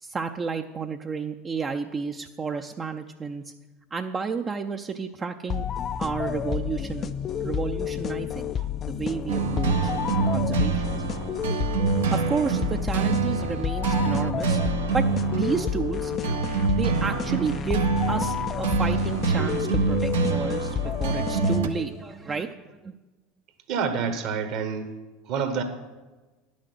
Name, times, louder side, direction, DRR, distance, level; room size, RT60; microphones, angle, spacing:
voice 1, 0.0-3.5 3.9-5.7 6.0-7.1 7.4-8.5 8.8-9.9 10.2-10.8 12.1-14.6 14.9-16.1 16.7-22.9, right 5 dB, 25° right, 5 dB, 0.5 m, -31 dB
sound 1, 5.5-22.0, left 9 dB, 35° left, 0.4 m, -30 dB
sound 2, 9.3-21.7, right 5 dB, 75° right, 0.8 m, -26 dB
voice 2, 23.7-24.9 25.3-25.6, right 6 dB, 55° right, 8 dB, 1.3 m, -28 dB
10.5 x 6.3 x 6.1 m, 1.2 s
hypercardioid pair, 75°, 0 cm